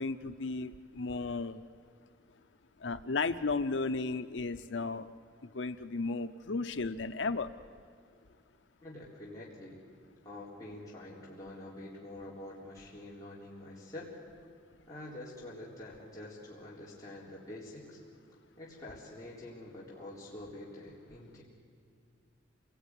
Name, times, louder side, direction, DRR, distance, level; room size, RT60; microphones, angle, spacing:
voice 1, 0.0-1.6 2.8-5.1 5.5-7.5, left 3 dB, 80° left, 9 dB, 0.7 m, -34 dB
voice 2, 8.8-9.8 10.2-14.1 14.9-18.0 18.6-21.4, left 1 dB, 20° left, -7 dB, 4.0 m, -46 dB
28.0 x 19.5 x 9.8 m, 2.2 s
head